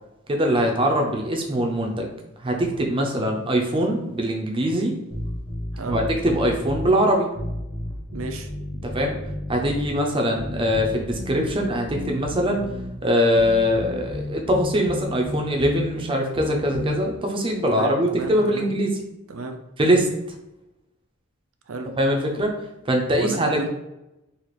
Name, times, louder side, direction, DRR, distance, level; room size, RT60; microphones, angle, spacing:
voice 1, 0.3-2.1 2.4-4.9 5.9-7.3 8.8-9.1 9.5-12.6 13.0-19.0 19.8-20.1 22.0-22.5 22.9-23.7, equal, 25° right, 1 dB, 0.5 m, -22 dB
sound 1, 5.1-6.9 7.4-10.0 10.4-12.9 13.4-15.9 16.4-17.0, left 1 dB, 20° left, 0.8 m, -32 dB
voice 2, 5.7-6.1 8.1-8.5 17.7-18.7 19.3-19.6 21.7-21.9 23.2-23.7, right 3 dB, 80° right, 5 dB, 0.5 m, -33 dB
4.0 x 2.4 x 3.1 m, 0.94 s
head